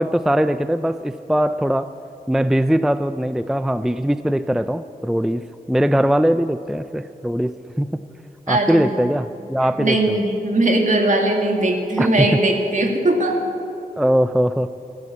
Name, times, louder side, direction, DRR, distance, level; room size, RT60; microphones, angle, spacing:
voice 1, 0.0-1.9 2.3-8.0 8.5-10.2 12.0-12.3 14.0-14.7, equal, 5° right, 12 dB, 0.3 m, -21 dB
voice 2, 8.5-9.1 9.8-13.4, right 1 dB, 55° right, 2 dB, 2.2 m, -19 dB
15.5 x 11.0 x 8.5 m, 2.9 s
wide cardioid pair, 110°, 16 cm